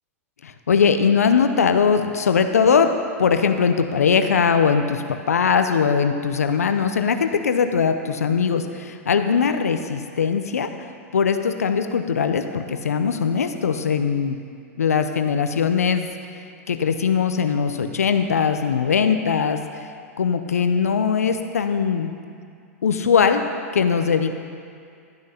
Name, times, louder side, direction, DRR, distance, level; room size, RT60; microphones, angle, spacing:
voice 1, 0.4-10.7 11.1-14.4 14.8-16.1 16.3-16.4 16.7-19.9 20.2-22.1 22.8-23.4 23.7-24.3, left 6 dB, 85° left, 8 dB, 0.6 m, -20 dB
12.0 x 6.1 x 5.7 m, 2.3 s
hypercardioid pair, 105°, 8 cm